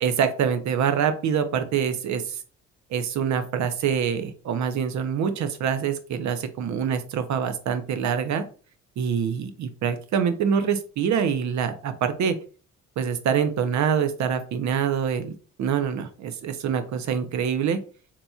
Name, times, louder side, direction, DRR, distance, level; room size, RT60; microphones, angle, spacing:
voice 1, 0.0-2.4 2.9-8.4 9.0-12.4 13.0-15.3 15.6-17.8, right 7 dB, 70° right, 10 dB, 0.7 m, -25 dB
4.1 x 2.9 x 2.3 m, 0.37 s
cardioid pair, 90°, 30 cm